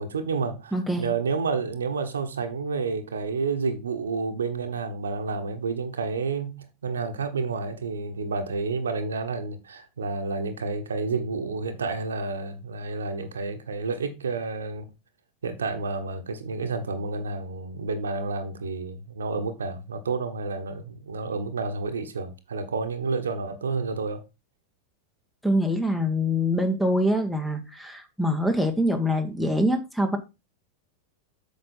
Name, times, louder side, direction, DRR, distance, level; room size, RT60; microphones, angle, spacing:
voice 1, 0.0-14.9 15.4-24.2, right 4 dB, 70° right, 1.3 m, -30 dB
voice 2, 0.7-1.1 25.4-30.2, equal, 5° left, 1.5 m, -24 dB
8.3 x 5.9 x 4.4 m
figure-of-eight pair, 90°, 0 cm